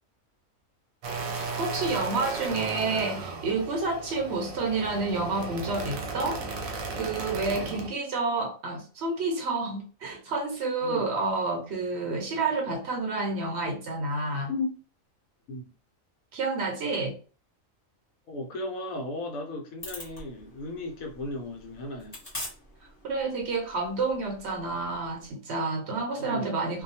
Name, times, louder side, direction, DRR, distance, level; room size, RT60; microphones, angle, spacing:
sound 1, 1.0-7.9, right 4 dB, 85° right, 1.1 m, -35 dB
voice 1, 1.6-6.4 7.0-14.5 16.3-17.1 23.0-26.8, right 3 dB, 65° right, 0.7 m, -29 dB
voice 2, 7.4-7.7 10.8-11.1 14.5-14.7 15.5-15.6 18.3-22.2 26.2-26.5 26.7-26.8, left 2 dB, 80° left, 1.1 m, -35 dB
sound 2, 19.8-25.3, left 1 dB, 30° left, 1.2 m, -45 dB
2.6 x 2.1 x 2.7 m
omnidirectional pair, 1.4 m